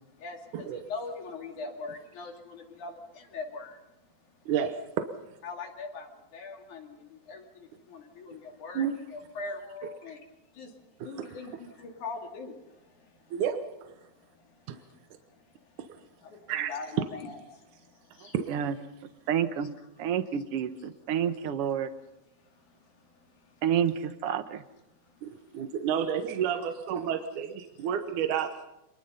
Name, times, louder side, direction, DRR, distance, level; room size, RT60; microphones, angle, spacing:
voice 1, 0.2-2.9 3.3-3.7 5.4-6.1 6.3-6.9 7.3-7.4 7.9-8.9 9.1-10.2 10.6-10.7 11.0-11.5 12.0-12.6 16.5-17.4 19.6-19.7, left 4 dB, 75° left, 3 dB, 4.0 m, -40 dB
voice 2, 4.5-5.1 8.8-9.0 11.0-11.3 13.3-13.9 14.7-14.8 16.5-16.7 18.2-18.6 25.2-28.6, right 8 dB, 80° right, 7 dB, 2.5 m, -31 dB
voice 3, 19.3-21.9 23.6-24.6, right 8 dB, 60° right, 11 dB, 1.8 m, -29 dB
27.0 x 21.0 x 5.6 m, 0.94 s
omnidirectional pair, 3.5 m